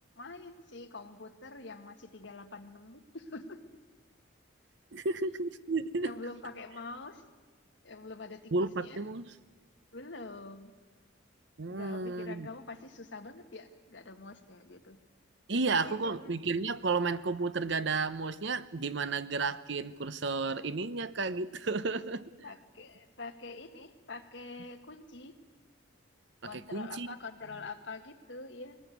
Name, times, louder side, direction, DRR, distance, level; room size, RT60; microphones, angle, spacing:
voice 1, 0.1-3.6 6.0-7.2 7.8-8.5 8.8-9.0 9.9-10.7 11.7-15.0 15.8-16.4 22.4-25.4 26.4-28.8, left 3 dB, 60° left, 6 dB, 1.7 m, -45 dB
voice 2, 4.9-6.1 8.5-9.3 11.6-12.5 15.5-22.2 26.4-27.1, right 3 dB, 60° right, 14 dB, 0.8 m, -32 dB
21.0 x 19.0 x 9.2 m, 1.3 s
head